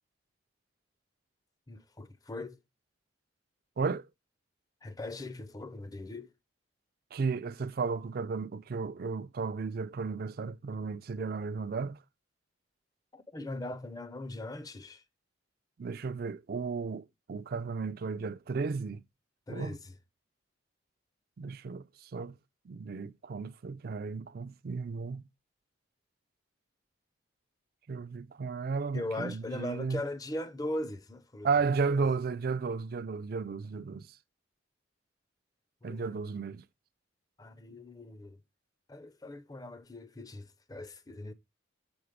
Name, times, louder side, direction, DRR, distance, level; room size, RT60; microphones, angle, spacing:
voice 1, 1.7-2.6 4.8-6.3 13.1-15.0 19.5-19.9 28.9-31.5 31.8-31.9 35.8-36.1 37.4-38.4 38.9-41.3, left 1 dB, 20° left, 0.5 m, -40 dB
voice 2, 7.1-12.0 15.8-19.0 19.5-19.8 21.4-22.4 22.7-25.2 27.9-30.0 31.4-34.1 35.8-36.6, right 4 dB, 50° right, 0.4 m, -34 dB
7.0 x 3.8 x 5.0 m
head